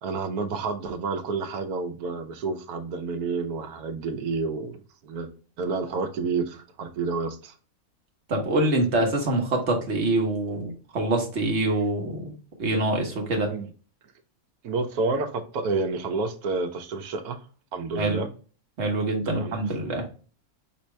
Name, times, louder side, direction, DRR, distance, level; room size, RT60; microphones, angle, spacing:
voice 1, 0.0-5.3 5.6-7.5 13.5-13.7 14.6-17.4 17.7-18.3 19.3-19.6, right 4 dB, 90° right, 1.2 m, -29 dB
voice 2, 8.3-12.3 12.6-13.5 18.0-18.2 18.8-20.0, right 2 dB, 50° right, 1.3 m, -25 dB
5.2 x 2.8 x 3.2 m
omnidirectional pair, 1.5 m